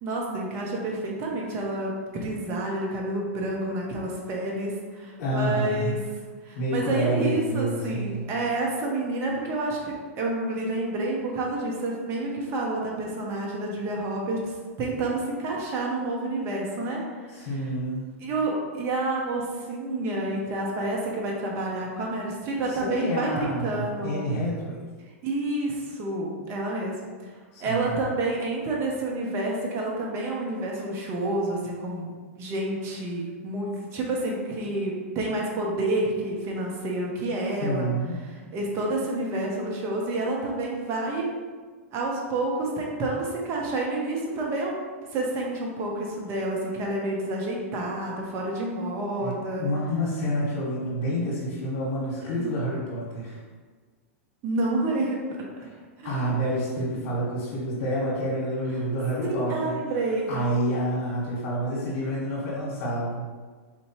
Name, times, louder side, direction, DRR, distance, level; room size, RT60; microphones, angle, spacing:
voice 1, 0.0-6.0 6.4-17.6 18.2-24.2 25.2-26.9 27.6-37.9 38.2-41.3 41.9-44.7 45.1-49.7 52.4-52.5 54.4-55.2 56.0-56.2 59.3-60.3, right 2 dB, 35° right, -2 dB, 0.8 m, -29 dB
voice 2, 5.2-6.0 6.5-8.2 17.3-18.1 22.7-24.8 27.5-27.9 37.6-38.2 49.2-49.3 49.6-53.4 55.6-55.7 56.0-59.8 60.3-63.3, equal, 50° left, -10 dB, 1.4 m, -28 dB
4.4 x 2.7 x 2.9 m, 1.5 s
hypercardioid pair, 120°, 8 cm